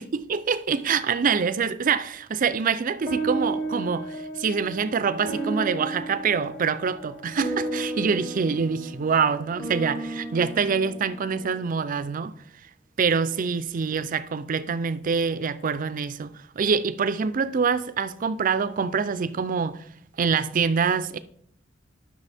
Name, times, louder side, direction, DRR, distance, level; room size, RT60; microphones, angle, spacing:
voice 1, 0.3-12.3 13.0-19.8 20.2-21.2, right 5 dB, 45° right, 0.4 m, -25 dB
sound 1, 3.1-11.7, right 2 dB, 45° left, 1.7 m, -33 dB
11.0 x 6.2 x 3.4 m
head